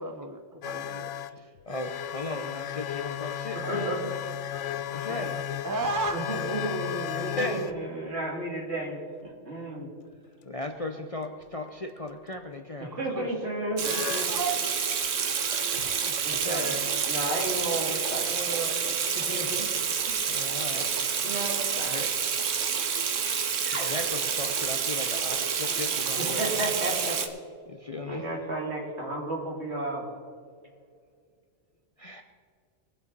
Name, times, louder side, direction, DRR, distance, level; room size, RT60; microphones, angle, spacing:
voice 1, 0.0-1.5 3.6-4.1 4.5-4.7 5.1-6.5 6.8-6.9 12.9-13.2 14.3-15.9, right 3 dB, 20° right, 5 dB, 0.7 m, -36 dB
sound 1, 0.6-7.8 12.1-12.3 13.8-14.3 15.7-16.0 17.6-17.7, left 11 dB, 70° left, 0.9 m, -34 dB
voice 2, 1.7-4.1 4.9-5.5 7.1-7.7 10.4-12.9 13.2-13.3 16.0-16.9 20.3-20.9 21.9-22.1 23.6-26.6 27.7-28.3 32.0-32.2, left 2 dB, 35° left, 5 dB, 0.7 m, -36 dB
voice 3, 3.7-4.0 6.1-9.9 12.8-14.3 16.2-19.7 20.7-22.0 26.2-27.1 28.1-30.0, right 2 dB, 55° right, -2 dB, 3.0 m, -33 dB
Water tap faucet / Sink (filling or washing), 13.8-27.3, right 7 dB, 75° right, 1.3 m, -28 dB
22.0 x 8.0 x 4.0 m, 2.1 s
omnidirectional pair, 1.3 m